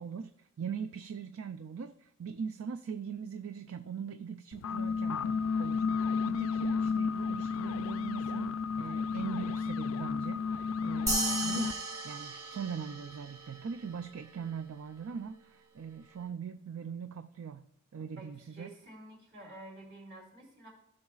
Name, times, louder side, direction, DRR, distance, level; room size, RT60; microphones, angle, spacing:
voice 1, 0.0-11.8 12.0-17.7 17.9-18.7, right 6 dB, 70° right, 10 dB, 0.4 m, -41 dB
sound 1, 4.5-11.7, left 5 dB, 70° left, 0.3 m, -32 dB
sound 2, 11.1-13.8, right 2 dB, 15° right, 1.2 m, -35 dB
voice 2, 18.2-20.7, right 1 dB, 55° right, -3 dB, 3.9 m, -50 dB
15.5 x 6.4 x 2.4 m, 0.79 s
head